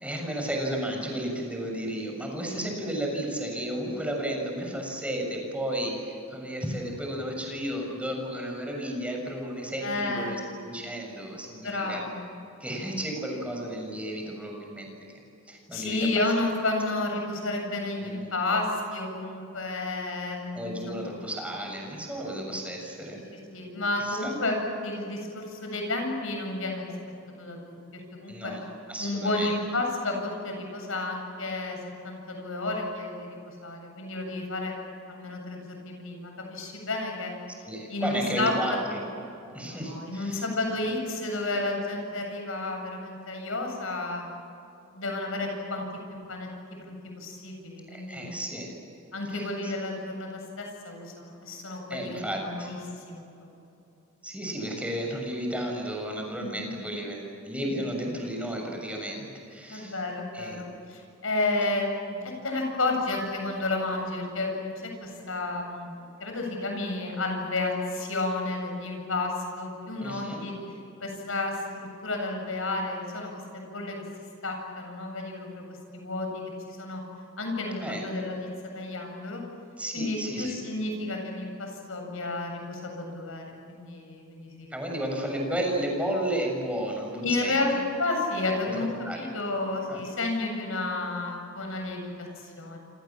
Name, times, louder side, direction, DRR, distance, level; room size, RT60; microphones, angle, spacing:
voice 1, 0.0-12.0 12.6-14.9 15.5-16.2 18.0-18.3 20.5-23.2 24.0-24.3 28.3-29.5 37.6-39.0 39.5-40.4 47.9-48.7 49.3-49.7 51.9-52.7 54.2-59.9 60.3-60.6 70.0-70.4 77.8-78.1 79.8-80.6 84.7-87.8 88.7-89.2 89.9-90.0, right 1 dB, 5° right, 1 dB, 6.8 m, -33 dB
voice 2, 9.8-10.4 11.6-12.2 15.7-21.1 23.1-26.8 27.4-28.5 29.0-31.8 32.0-34.7 35.1-37.3 37.9-38.8 39.6-44.2 44.9-45.9 46.3-46.5 46.8-48.4 49.1-52.8 53.1-53.3 56.4-56.7 59.7-64.7 65.0-70.5 71.0-74.0 74.4-75.6 75.9-76.4 76.7-77.0 77.4-78.5 78.7-79.4 79.9-84.7 87.2-87.7 88.0-88.9 89.1-92.8, left 2 dB, 70° left, 2 dB, 8.0 m, -31 dB
28.5 x 27.0 x 7.5 m, 2.7 s
head